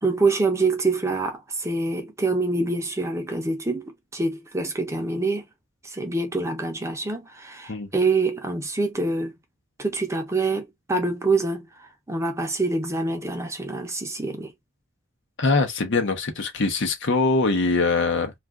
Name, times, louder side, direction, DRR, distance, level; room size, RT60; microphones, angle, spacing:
voice 1, 0.0-5.4 5.8-9.3 9.8-14.5, right 3 dB, 15° right, 0.6 m, -26 dB
voice 2, 15.4-18.3, left 3 dB, 60° left, 0.8 m, -22 dB
2.5 x 2.3 x 3.5 m
head